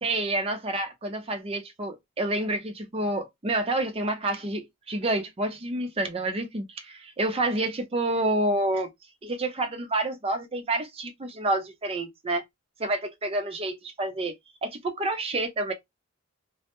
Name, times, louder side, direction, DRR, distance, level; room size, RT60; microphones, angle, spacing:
voice 1, 0.0-8.9 9.2-12.4 12.8-14.3 14.6-15.7, right 2 dB, 30° right, 0.5 m, -28 dB
2.1 x 2.0 x 2.9 m
head